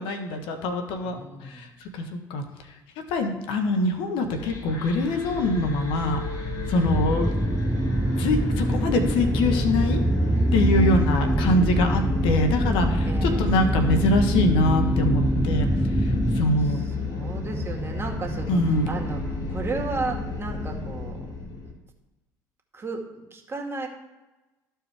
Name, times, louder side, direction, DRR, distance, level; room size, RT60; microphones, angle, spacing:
voice 1, 0.0-1.1 1.4-1.7 1.9-2.4 3.1-6.2 6.7-7.3 8.2-10.0 10.5-15.7 16.0-16.8 18.5-18.9, left 2 dB, 75° left, 5 dB, 1.3 m, -24 dB
voice 2, 1.0-1.7 6.8-7.0 10.7-11.1 13.0-13.6 16.6-21.3 22.7-23.9, right 3 dB, 30° right, 1 dB, 2.1 m, -34 dB
sound 1, 4.3-21.7, left 2 dB, 45° left, 2.5 m, -31 dB
sound 2, 6.9-16.5, right 1 dB, 10° right, 0.4 m, -24 dB
13.5 x 4.6 x 3.5 m, 1.1 s
hypercardioid pair, 65°, 9 cm